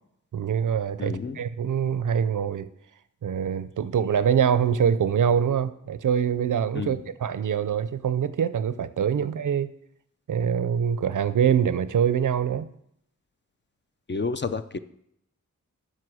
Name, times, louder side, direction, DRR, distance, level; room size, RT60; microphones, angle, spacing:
voice 1, 0.3-2.7 3.2-9.7 10.3-12.7, right 8 dB, 75° right, 14 dB, 0.5 m, -24 dB
voice 2, 1.0-1.4 6.7-7.0 14.1-14.8, left 4 dB, 35° left, 11 dB, 0.5 m, -30 dB
7.6 x 5.8 x 6.3 m, 0.74 s
wide cardioid pair, 100°, 32 cm